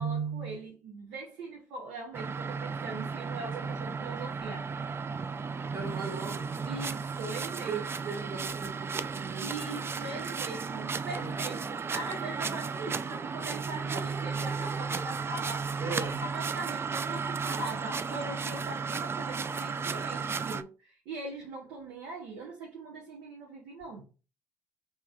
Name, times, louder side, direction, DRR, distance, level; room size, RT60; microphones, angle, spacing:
voice 1, 0.0-4.7 6.6-7.8 9.4-16.1 16.3-24.1, right 3 dB, 80° right, 0.9 m, -40 dB
sound 1, 2.1-20.6, right 5 dB, 30° right, 0.3 m, -34 dB
voice 2, 5.7-6.5 7.7-9.6 11.2-11.6 15.8-16.2, right 5 dB, 60° right, 1.8 m, -39 dB
4.8 x 2.9 x 2.3 m
hypercardioid pair, 55°, 9 cm